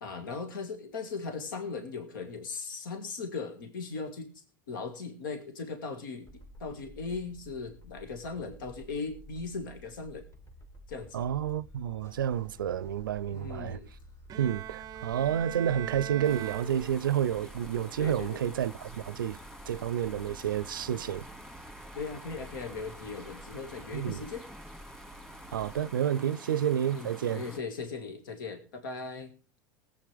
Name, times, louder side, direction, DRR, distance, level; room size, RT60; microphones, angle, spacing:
voice 1, 0.0-10.3 10.9-11.3 13.3-13.9 18.0-18.4 21.9-24.4 26.9-29.3, left 4 dB, 80° left, 1.9 m, -38 dB
sound 1, 6.2-25.9, left 1 dB, 25° left, 2.1 m, -52 dB
voice 2, 11.1-13.8 14.4-19.4 19.7-21.2 23.9-24.2 25.5-27.4, right 10 dB, 90° right, 0.5 m, -30 dB
Bowed string instrument, 14.3-17.4, right 12 dB, 35° right, 0.5 m, -41 dB
sound 2, 16.2-27.6, equal, 5° left, 2.3 m, -49 dB
20.5 x 8.1 x 3.4 m
hypercardioid pair, 95°, 11 cm